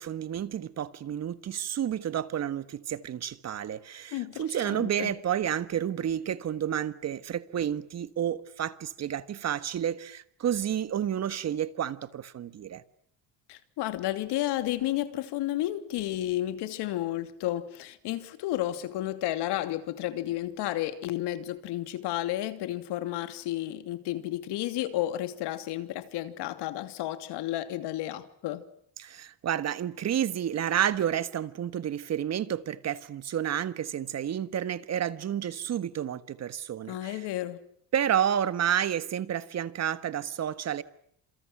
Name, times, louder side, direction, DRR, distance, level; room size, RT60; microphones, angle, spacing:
voice 1, 0.0-12.8 29.0-37.1 37.9-40.8, right 9 dB, 40° right, 1.5 m, -30 dB
voice 2, 4.1-5.1 13.5-28.6 36.9-37.6, left 14 dB, 75° left, 2.8 m, -32 dB
29.5 x 27.5 x 6.1 m
cardioid pair, 155°, 41 cm